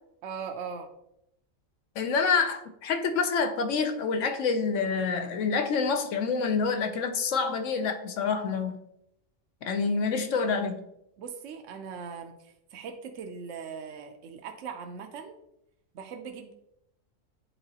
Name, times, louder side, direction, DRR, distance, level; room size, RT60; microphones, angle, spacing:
voice 1, 0.2-0.9 11.2-15.4 15.9-16.5, right 6 dB, 70° right, 5 dB, 1.0 m, -40 dB
voice 2, 2.0-8.8 9.6-10.9, left 5 dB, 70° left, 7 dB, 1.0 m, -27 dB
8.8 x 3.9 x 2.8 m, 0.79 s
omnidirectional pair, 1.4 m